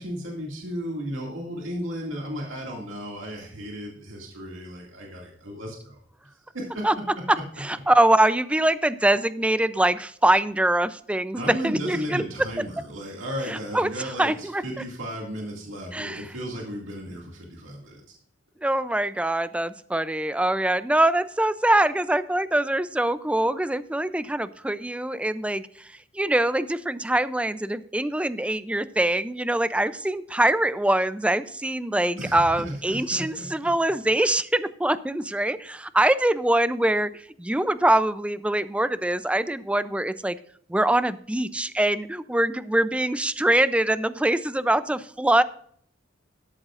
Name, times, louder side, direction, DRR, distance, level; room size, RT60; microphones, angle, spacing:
voice 1, 0.0-6.0 6.5-6.9 11.3-18.0 32.2-33.5, equal, 80° right, -1 dB, 2.2 m, -34 dB
voice 2, 7.3-12.2 13.5-14.6 15.9-16.3 18.6-40.4 40.7-45.4, right 1 dB, 5° right, 14 dB, 0.4 m, -23 dB
13.0 x 11.5 x 2.5 m, 0.62 s
head